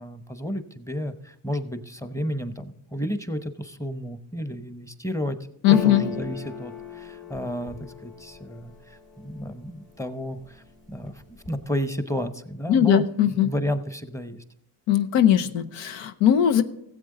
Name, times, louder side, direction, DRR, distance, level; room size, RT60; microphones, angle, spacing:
voice 1, 0.0-5.4 5.7-11.1 11.5-14.4, equal, 5° left, 11 dB, 0.9 m, -32 dB
voice 2, 5.6-6.0 12.7-13.5 14.9-16.6, left 10 dB, 85° left, 8 dB, 0.7 m, -19 dB
sound 1, 5.7-9.5 10.0-10.6 10.9-11.6, left 4 dB, 55° left, 3.9 m, -37 dB
15.0 x 7.9 x 3.9 m, 0.77 s
supercardioid pair, 55°, 43 cm